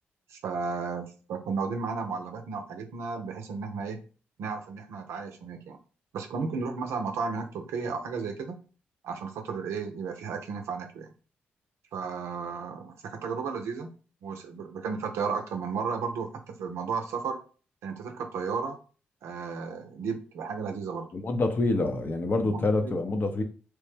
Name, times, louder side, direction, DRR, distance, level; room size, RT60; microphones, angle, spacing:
voice 1, 0.3-4.0 4.4-5.8 6.1-8.6 9.0-11.1 11.9-13.9 14.2-17.4 17.8-18.8 19.2-21.1 22.4-23.0, right 5 dB, 75° right, 0.5 m, -34 dB
voice 2, 21.1-23.4, left 2 dB, 45° left, 0.6 m, -26 dB
3.1 x 2.1 x 3.3 m
hypercardioid pair, 45°, 5 cm